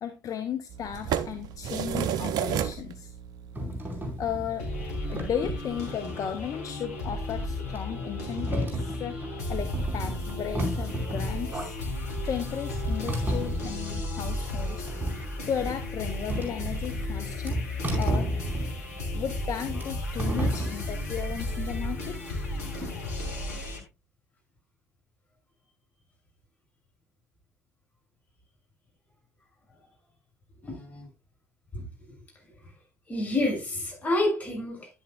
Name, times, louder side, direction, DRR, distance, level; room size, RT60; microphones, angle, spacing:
voice 1, 0.0-3.1 4.2-4.7 5.1-9.2 9.5-14.9 15.5-17.6 18.0-18.3 19.1-22.2, left 8 dB, 45° left, 1.0 m, -35 dB
sound 1, 0.7-5.9, right 9 dB, 55° right, 0.7 m, -34 dB
sound 2, 3.5-21.9, right 1 dB, 25° right, 4.7 m, -33 dB
sound 3, 4.6-23.8, left 2 dB, 80° left, 2.1 m, -34 dB
voice 2, 30.6-31.1 31.7-31.8 33.1-34.9, left 1 dB, 20° left, 6.9 m, -29 dB
10.5 x 9.9 x 2.3 m
figure-of-eight pair, 55°, 8 cm